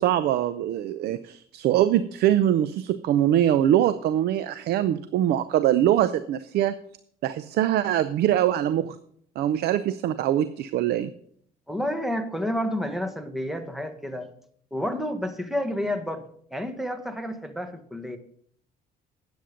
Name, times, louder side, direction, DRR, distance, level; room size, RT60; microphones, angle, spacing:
voice 1, 0.0-6.7 7.2-9.0 9.4-11.1, right 11 dB, 70° right, 13 dB, 0.6 m, -23 dB
voice 2, 11.7-14.3 14.7-16.2 16.5-18.2, equal, ahead, 8 dB, 1.4 m, -30 dB
10.5 x 8.3 x 5.1 m, 0.63 s
cardioid pair, 110°, 17 cm